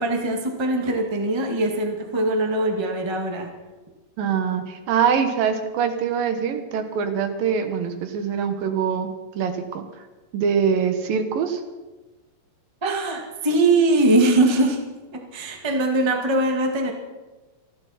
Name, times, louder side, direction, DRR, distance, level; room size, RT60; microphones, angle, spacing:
voice 1, 0.0-3.5 12.8-14.8 15.1-16.9, right 2 dB, 15° right, 2 dB, 1.0 m, -21 dB
voice 2, 4.2-9.1 9.3-9.8 10.3-11.6, right 7 dB, 85° right, 7 dB, 3.1 m, -23 dB
27.0 x 11.5 x 4.3 m, 1.2 s
omnidirectional pair, 3.9 m